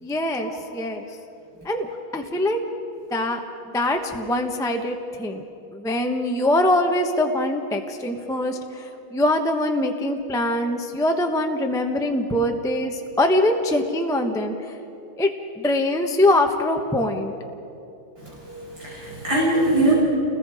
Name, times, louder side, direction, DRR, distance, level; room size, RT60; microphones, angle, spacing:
voice 1, 0.0-1.1 1.6-2.6 3.1-3.4 3.7-5.4 5.7-14.5 15.2-17.3, left 1 dB, 5° left, 3 dB, 0.5 m, -23 dB
voice 2, 18.2-19.9, right 1 dB, 50° right, -6 dB, 5.8 m, -23 dB
29.5 x 21.0 x 5.0 m, 2.8 s
omnidirectional pair, 2.3 m